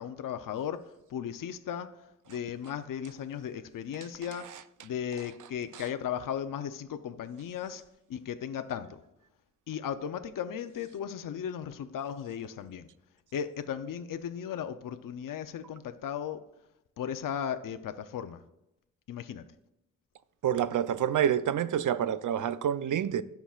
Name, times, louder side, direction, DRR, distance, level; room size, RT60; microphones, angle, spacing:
voice 1, 0.0-7.8 8.1-9.0 9.7-12.9 13.3-16.4 17.0-18.4 19.1-19.4, left 8 dB, 80° left, 0.6 m, -36 dB
voice 2, 20.4-23.2, right 9 dB, 70° right, 0.6 m, -27 dB
17.0 x 5.9 x 2.4 m
cardioid pair, 60°, 32 cm